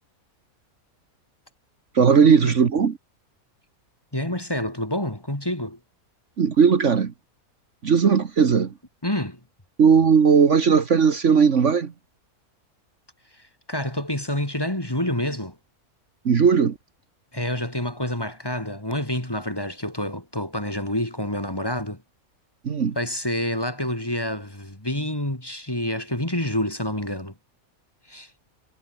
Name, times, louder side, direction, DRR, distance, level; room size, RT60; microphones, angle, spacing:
voice 1, 1.9-3.0 6.4-7.1 7.8-8.8 9.8-11.9 16.2-16.8 22.6-23.0, right 6 dB, 55° right, 1.6 m, -17 dB
voice 2, 4.1-5.8 9.0-9.4 13.7-15.6 17.3-22.0 23.0-27.3 28.1-28.3, left 1 dB, 15° left, 3.1 m, -28 dB
omnidirectional pair, 1.5 m